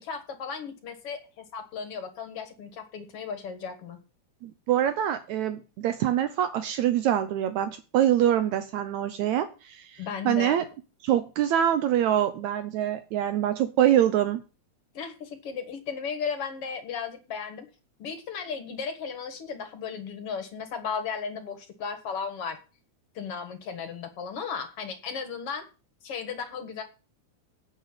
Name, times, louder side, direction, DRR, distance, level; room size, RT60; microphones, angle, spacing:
voice 1, 0.0-4.0 10.0-10.6 14.9-17.7 18.0-22.6 23.2-25.7 26.0-26.8, left 6 dB, 55° left, 7 dB, 2.3 m, -35 dB
voice 2, 4.4-10.6 11.0-14.4, right 11 dB, 75° right, 10 dB, 2.0 m, -25 dB
9.2 x 6.7 x 8.8 m, 0.34 s
omnidirectional pair, 3.5 m